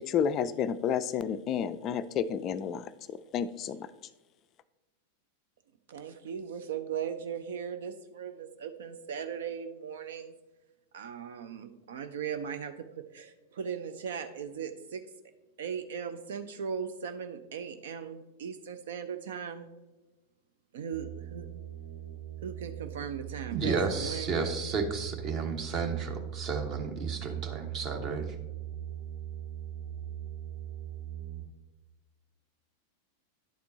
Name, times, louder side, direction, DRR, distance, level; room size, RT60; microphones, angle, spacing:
voice 1, 0.0-3.9, left 8 dB, 35° left, 14 dB, 0.3 m, -31 dB
voice 2, 5.9-10.3 10.9-15.1 15.6-19.7 20.7-21.5 22.4-24.4, right 7 dB, 60° right, 9 dB, 0.5 m, -38 dB
sound 1, 20.9-31.4, right 11 dB, 85° right, 1.6 m, -41 dB
voice 3, 23.5-28.3, right 5 dB, 35° right, 4 dB, 1.2 m, -32 dB
10.5 x 4.3 x 4.0 m, 1.1 s
figure-of-eight pair, 90°, 0 cm